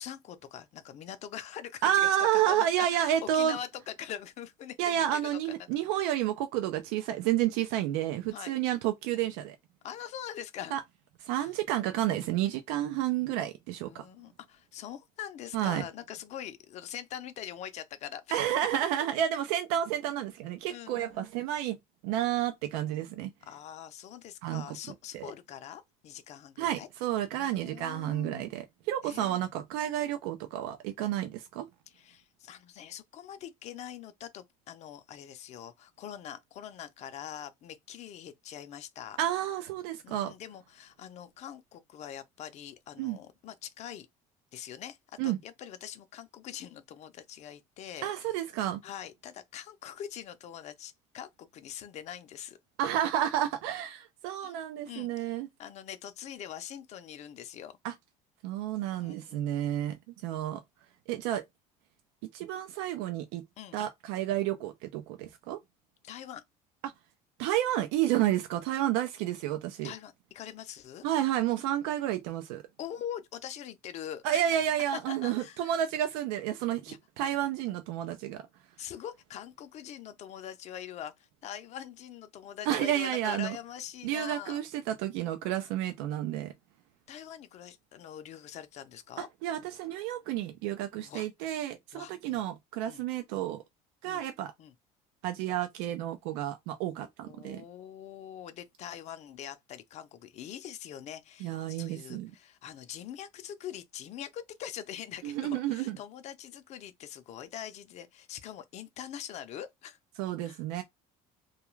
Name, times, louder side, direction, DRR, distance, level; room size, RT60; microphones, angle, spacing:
voice 1, 0.0-5.7 8.3-8.5 9.8-10.8 11.4-11.5 13.9-18.5 20.7-21.2 23.5-26.9 27.3-28.4 29.0-29.4 31.9-39.2 40.0-44.1 44.5-48.1 48.8-52.6 54.4-54.5 54.9-57.8 59.0-59.4 63.6-63.8 66.0-66.4 69.8-71.1 72.8-74.6 75.1-75.7 76.9-77.0 78.8-84.6 87.1-89.3 91.0-91.3 91.9-92.4 92.8-93.0 94.0-94.3 94.6-94.7 97.3-110.0 110.4-110.6, left 10 dB, 45° left, 0.5 m, -43 dB
voice 2, 1.8-3.6 4.8-9.6 10.7-10.8 11.2-14.1 15.5-15.9 18.3-21.8 22.0-23.3 24.4-24.8 25.1-25.3 26.6-31.7 39.2-40.3 43.0-43.2 45.2-45.4 48.0-48.8 52.8-55.5 57.8-57.9 58.4-60.6 61.1-61.4 62.3-63.4 63.7-65.6 66.8-66.9 67.4-69.9 71.0-72.6 74.2-78.5 82.7-83.6 84.0-86.5 89.2-93.6 94.0-94.5 95.2-97.6 101.4-102.3 105.2-106.0 110.2-110.8, right 12 dB, 90° right, 0.5 m, -30 dB
2.3 x 2.3 x 3.0 m
cardioid pair, 120°, 16 cm